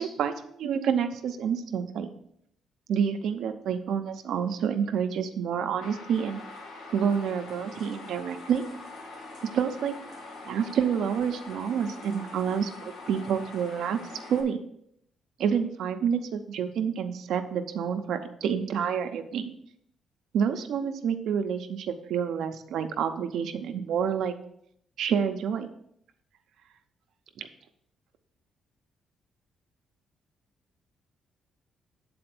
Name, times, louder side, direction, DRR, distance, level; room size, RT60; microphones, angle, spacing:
voice 1, 0.0-2.1 2.9-6.4 6.9-8.6 9.5-9.9 10.4-14.0 14.3-14.6 15.4-19.5 20.3-24.3 25.0-25.7 27.4-27.5, right 7 dB, 75° right, 7 dB, 0.8 m, -28 dB
sound 1, 5.8-14.4, left 3 dB, 80° left, 1.6 m, -44 dB
7.7 x 4.3 x 6.1 m, 0.71 s
cardioid pair, 90°, 0 cm